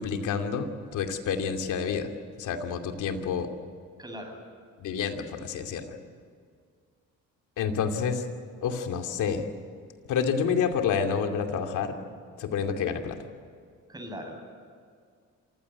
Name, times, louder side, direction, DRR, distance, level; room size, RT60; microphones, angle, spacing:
voice 1, 0.0-2.1 2.4-3.5 4.8-5.9 7.6-8.2 8.6-9.5 10.1-12.0 12.4-13.2, left 6 dB, 85° left, 5 dB, 2.6 m, -29 dB
voice 2, 4.0-4.4 13.9-14.4, equal, 15° right, 3 dB, 7.6 m, -39 dB
27.0 x 16.0 x 9.7 m, 2.1 s
cardioid pair, 90°, 30 cm